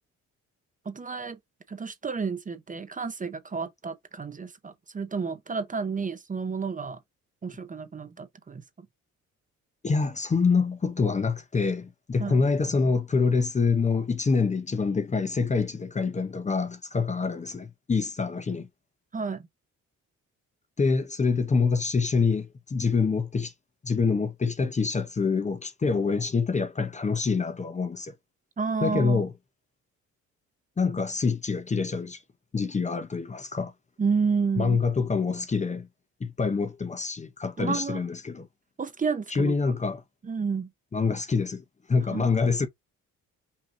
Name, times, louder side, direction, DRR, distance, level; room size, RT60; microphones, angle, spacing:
voice 1, 0.8-1.4 1.7-7.0 7.4-8.6 12.2-12.4 19.1-19.5 28.6-29.2 34.0-34.8 37.6-38.0 38.8-39.5 40.2-40.7 42.1-42.3, right 5 dB, 25° right, 0.7 m, -30 dB
voice 2, 9.8-18.7 20.8-23.5 23.8-28.1 28.8-29.3 30.8-32.2 32.5-33.7 34.6-35.9 36.2-38.5 39.3-40.0 40.9-42.7, left 4 dB, 25° left, 0.7 m, -26 dB
5.5 x 2.7 x 2.5 m
cardioid pair, 90°, 30 cm